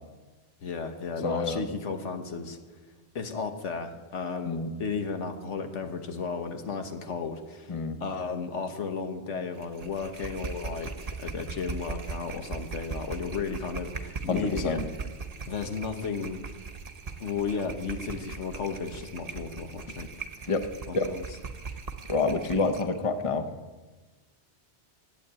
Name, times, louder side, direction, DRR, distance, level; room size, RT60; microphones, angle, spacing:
voice 1, 0.6-2.6 3.1-7.7 8.0-14.8 15.5-16.4 17.2-20.1 20.4-20.5 20.9-21.2, left 5 dB, 85° left, 7 dB, 1.5 m, -34 dB
voice 2, 1.2-1.6 4.5-4.7 7.7-8.0 14.3-14.9 20.5-20.7 20.9-21.1 22.1-23.5, left 3 dB, 30° left, 9 dB, 0.8 m, -28 dB
sound 1, 9.6-23.0, right 4 dB, 35° right, 0.8 m, -39 dB
11.5 x 8.7 x 8.6 m, 1.2 s
omnidirectional pair, 1.2 m